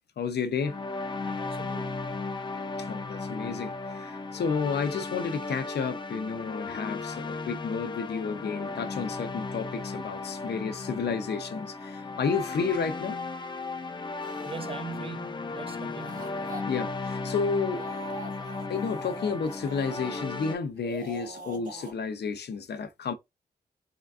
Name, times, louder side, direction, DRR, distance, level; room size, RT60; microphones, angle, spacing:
voice 1, 0.2-0.8 2.9-13.2 16.7-17.8 18.7-23.1, left 5 dB, 75° left, 0.6 m, -31 dB
sound 1, 0.6-20.5, left 3 dB, 30° left, 0.6 m, -35 dB
voice 2, 1.2-1.9 14.5-16.4, right 4 dB, 35° right, 0.6 m, -41 dB
sound 2, 14.2-14.6 15.8-16.6 17.5-20.3 20.7-21.9, right 2 dB, 55° right, 1.2 m, -44 dB
3.8 x 3.3 x 2.4 m
wide cardioid pair, 90°, 17 cm